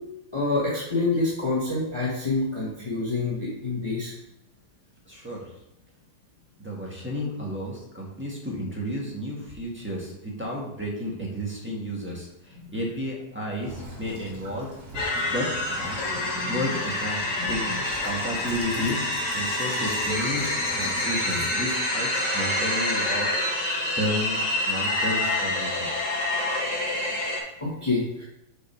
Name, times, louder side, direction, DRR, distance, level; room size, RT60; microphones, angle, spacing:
voice 1, 0.3-4.1 16.3-16.5 27.6-28.2, left 3 dB, 20° left, -6 dB, 1.4 m, -27 dB
voice 2, 5.1-5.5 6.6-14.7 15.3-16.0 16.5-17.2 17.5-17.7 18.0-19.0 19.3-20.4 20.7-25.9, equal, 5° right, -3 dB, 1.5 m, -32 dB
Child speech kid speaking / Bird vocalization bird call bird song / Stream, 13.6-21.6, right 2 dB, 65° right, 2.3 m, -42 dB
sound 1, 14.9-27.4, left 1 dB, 50° left, 2.2 m, -27 dB
6.6 x 4.8 x 4.4 m, 0.79 s
omnidirectional pair, 1.8 m